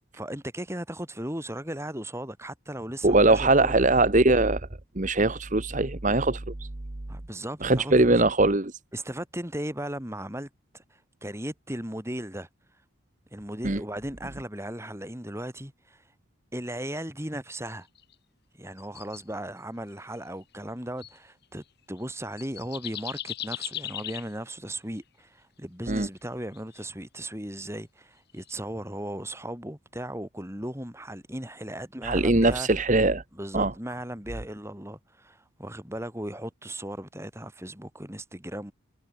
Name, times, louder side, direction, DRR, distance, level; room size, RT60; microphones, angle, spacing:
voice 1, 0.2-3.7 7.1-8.2 8.9-10.5 10.7-12.5 13.3-16.0 16.5-17.9 18.6-32.7 33.4-38.7, right 1 dB, 15° right, 6.3 m, -37 dB
voice 2, 3.0-4.7 4.9-6.7 7.6-8.8 13.6-13.8 25.9-26.1 32.0-33.2 33.5-33.7, right 2 dB, 35° right, 1.2 m, -21 dB
sound 1, 18.0-18.1 18.8-19.2 20.2-20.4 21.0-21.2 22.0-22.1 22.4-24.3 26.5-26.8 28.3-28.5, left 12 dB, 50° left, 3.2 m, -37 dB
head